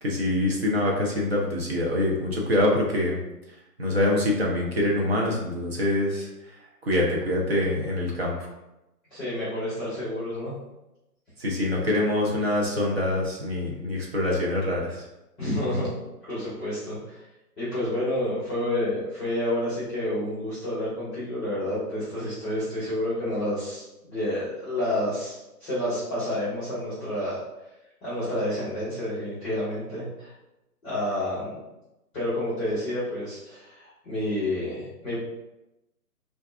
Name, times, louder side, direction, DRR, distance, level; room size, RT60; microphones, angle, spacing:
voice 1, 0.0-3.2 3.8-6.3 6.8-8.5 11.4-15.1, left 1 dB, 40° right, -2 dB, 0.7 m, -25 dB
voice 2, 9.1-10.5 15.4-15.9 16.2-17.2 17.6-27.4 28.0-30.3 30.8-31.5 32.1-35.2, left 1 dB, 5° left, -12 dB, 0.8 m, -29 dB
3.8 x 2.5 x 2.3 m, 0.94 s
hypercardioid pair, 160°, 48 cm